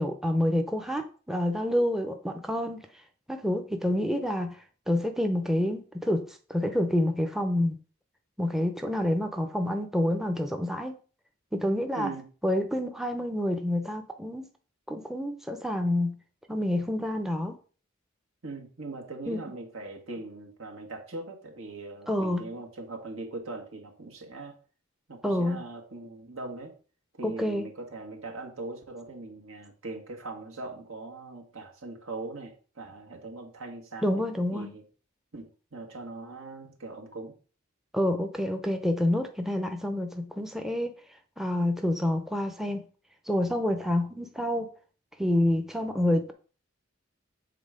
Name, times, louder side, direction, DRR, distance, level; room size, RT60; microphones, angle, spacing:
voice 1, 0.0-2.9 3.3-4.6 4.9-6.2 6.5-7.8 8.4-10.9 11.5-12.1 12.4-14.5 14.9-16.2 16.5-17.6 19.3-19.4 22.1-22.5 25.2-25.6 27.2-27.6 34.0-34.7 37.9-40.9 41.4-42.8 43.3-44.7 45.2-46.3, left 1 dB, ahead, 5 dB, 0.6 m, -28 dB
voice 2, 12.0-12.3 18.4-24.6 25.1-26.7 27.1-34.2 34.5-34.8 35.3-37.3, right 2 dB, 75° right, 2 dB, 1.8 m, -40 dB
7.6 x 3.9 x 5.0 m, 0.38 s
head